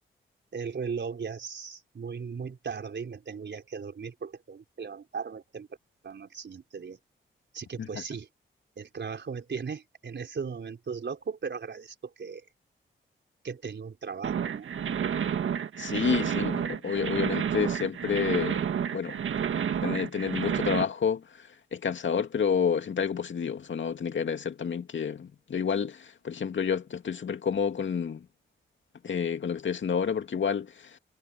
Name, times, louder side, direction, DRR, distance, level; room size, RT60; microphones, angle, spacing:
voice 1, 0.5-5.7 6.0-7.0 7.5-8.3 8.8-12.5 13.4-14.7, right 5 dB, 60° right, 4.1 m, -37 dB
sound 1, 14.2-20.8, right 8 dB, 75° right, 1.7 m, -30 dB
voice 2, 15.8-18.6 18.9-19.2 19.8-21.2 21.7-28.2 29.0-30.7, left 7 dB, 65° left, 2.3 m, -29 dB
cardioid pair, 55°, 21 cm